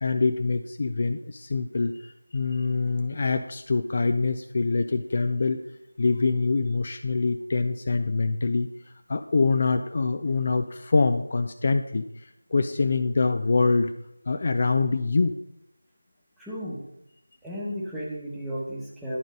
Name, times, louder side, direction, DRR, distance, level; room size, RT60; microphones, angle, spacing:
voice 1, 0.0-5.6 6.0-13.9 14.3-15.3, left 3 dB, 35° left, 8 dB, 0.3 m, -25 dB
voice 2, 16.4-16.8 17.4-19.2, equal, ahead, -7 dB, 1.0 m, -34 dB
11.0 x 3.9 x 5.4 m, 0.85 s
figure-of-eight pair, 170°, 0 cm